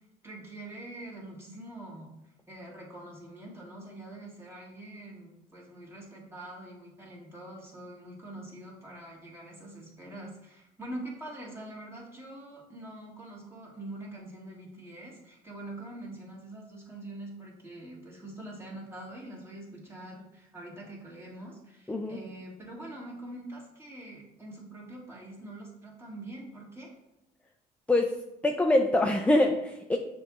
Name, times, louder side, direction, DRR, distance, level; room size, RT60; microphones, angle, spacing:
voice 1, 0.2-2.1 2.5-26.9, right 1 dB, 15° right, -4 dB, 1.6 m, -44 dB
voice 2, 28.4-30.0, left 1 dB, 5° left, 3 dB, 0.3 m, -24 dB
6.5 x 2.9 x 2.3 m, 0.91 s
supercardioid pair, 90°, 19 cm